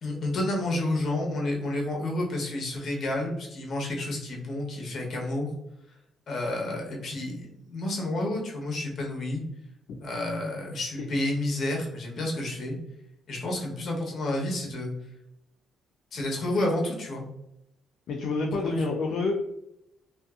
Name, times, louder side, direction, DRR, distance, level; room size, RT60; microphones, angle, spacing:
voice 1, 0.0-5.5 6.3-9.4 10.0-12.8 13.3-14.9 16.1-17.2 18.5-18.7, left 1 dB, 60° left, -1 dB, 1.0 m, -30 dB
voice 2, 18.1-19.3, left 3 dB, 75° left, 1 dB, 0.4 m, -28 dB
2.5 x 2.4 x 2.3 m, 0.83 s
cardioid pair, 90°, 0 cm